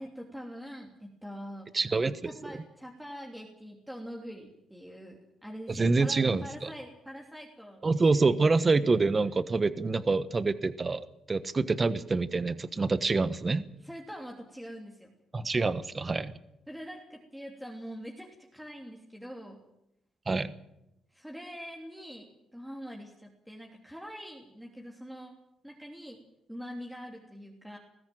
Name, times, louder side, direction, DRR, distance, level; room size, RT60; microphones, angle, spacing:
voice 1, 0.0-1.7 2.2-8.2 13.8-15.1 16.7-19.6 21.1-25.4 25.6-26.2 26.5-27.8, equal, 5° right, 0 dB, 3.1 m, -44 dB
voice 2, 1.7-2.3 5.7-6.7 7.8-11.0 11.3-13.6 15.3-16.3 20.3-20.5, right 3 dB, 30° right, 13 dB, 1.2 m, -26 dB
20.5 x 15.0 x 9.3 m, 0.86 s
cardioid pair, 90°, 0 cm